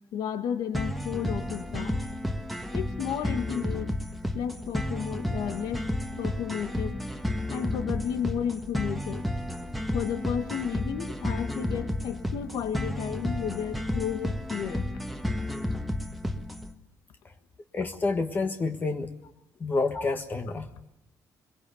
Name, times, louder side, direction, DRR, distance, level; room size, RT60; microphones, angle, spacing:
voice 1, 0.1-2.1 2.7-4.0 4.3-5.8 6.2-7.0 7.5-9.2 9.9-14.9, left 8 dB, 85° left, 9 dB, 1.5 m, -32 dB
sound 1, 0.7-16.7, left 1 dB, ahead, 1.5 m, -32 dB
voice 2, 17.7-19.1 19.6-20.9, left 3 dB, 30° left, 7 dB, 1.5 m, -29 dB
23.0 x 22.0 x 7.0 m, 0.88 s
cardioid pair, 135°, 7 cm